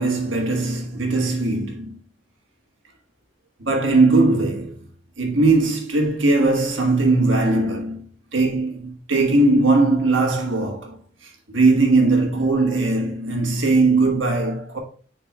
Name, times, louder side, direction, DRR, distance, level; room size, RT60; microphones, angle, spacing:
voice 1, 0.0-2.0 3.6-4.8 5.2-8.1 8.3-14.8, right 3 dB, 75° right, 1.5 m, -19 dB
9.6 x 4.3 x 2.3 m
head